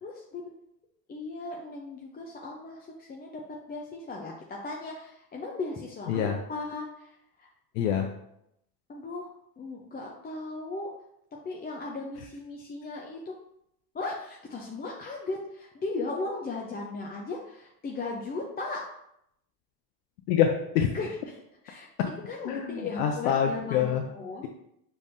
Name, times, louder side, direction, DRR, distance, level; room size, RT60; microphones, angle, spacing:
voice 1, 0.0-0.4 1.1-3.4 3.7-7.5 8.9-9.3 9.6-10.9 11.4-13.3 13.9-18.8 20.9-21.9 22.3-24.4, left 3 dB, 20° left, -1 dB, 0.6 m, -37 dB
voice 2, 6.1-6.4 7.8-8.1 20.3-20.9 22.0-22.1 22.4-24.1, left 8 dB, 80° left, 3 dB, 0.6 m, -26 dB
5.2 x 3.5 x 2.6 m, 0.79 s
hypercardioid pair, 80°, 47 cm